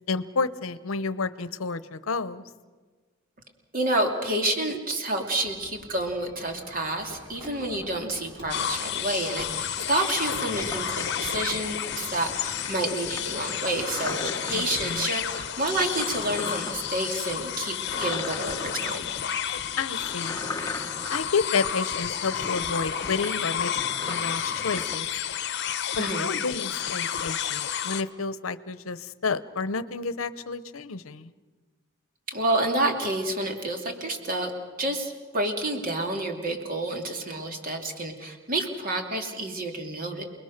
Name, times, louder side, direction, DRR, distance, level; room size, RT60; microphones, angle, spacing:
voice 1, 0.1-2.4 14.5-15.1 19.8-20.4 21.1-23.7 24.1-25.1 26.0-31.3, left 4 dB, 80° left, 14 dB, 0.8 m, -30 dB
voice 2, 3.7-19.1 26.0-26.3 32.3-34.5 34.8-40.2, right 1 dB, 40° right, 3 dB, 2.9 m, -29 dB
Wind chime, 5.3-21.5, equal, 20° right, 6.4 m, -49 dB
sound 1, 8.5-28.0, left 9 dB, 55° left, 0.9 m, -31 dB
sound 2, 10.1-25.0, left 2 dB, 15° left, 1.2 m, -39 dB
29.0 x 20.5 x 6.6 m, 1.4 s
head